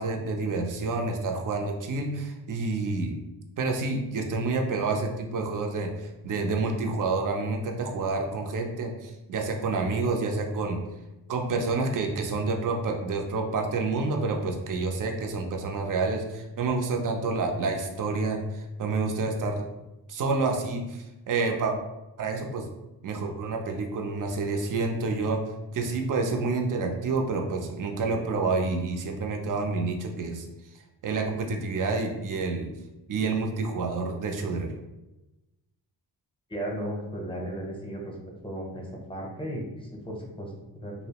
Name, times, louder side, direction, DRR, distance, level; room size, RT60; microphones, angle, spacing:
voice 1, 0.0-3.2 3.6-10.8 11.3-19.7 20.1-21.7 22.2-22.7 23.0-25.4 25.7-30.5 31.0-32.7 33.1-34.7, right 3 dB, 50° right, 3 dB, 0.5 m, -28 dB
voice 2, 36.5-38.1 38.4-40.9, right 1 dB, 10° left, -1 dB, 0.7 m, -35 dB
2.6 x 2.0 x 2.8 m, 1.0 s
cardioid pair, 60°, 42 cm